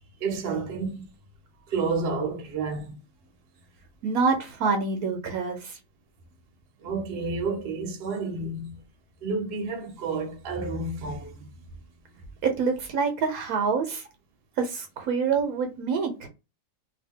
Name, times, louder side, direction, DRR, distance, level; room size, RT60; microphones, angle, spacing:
voice 1, 0.2-1.1 1.7-3.0 6.8-8.7 9.2-11.5, right 4 dB, 50° right, 0.9 m, -30 dB
voice 2, 4.0-5.8 12.4-14.0 14.6-16.3, right 5 dB, 70° right, 1.1 m, -26 dB
2.7 x 2.6 x 3.6 m
omnidirectional pair, 1.7 m